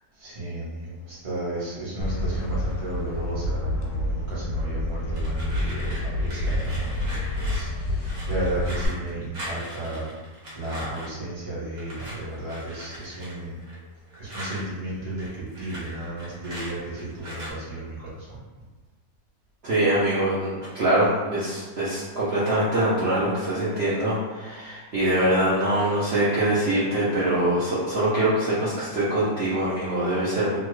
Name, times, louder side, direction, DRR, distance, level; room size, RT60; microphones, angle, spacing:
voice 1, 0.2-10.1 10.5-13.6 14.2-18.4, right 1 dB, 30° right, -7 dB, 0.6 m, -34 dB
sound 1, 2.0-8.9, left 1 dB, 90° left, 1.3 m, -28 dB
sound 2, 5.1-11.2 11.8-14.7 15.0-17.5, equal, 55° right, 1.0 m, -40 dB
voice 2, 19.6-30.6, right 1 dB, 70° right, -10 dB, 0.5 m, -23 dB
2.9 x 2.3 x 3.1 m, 1.2 s
omnidirectional pair, 2.0 m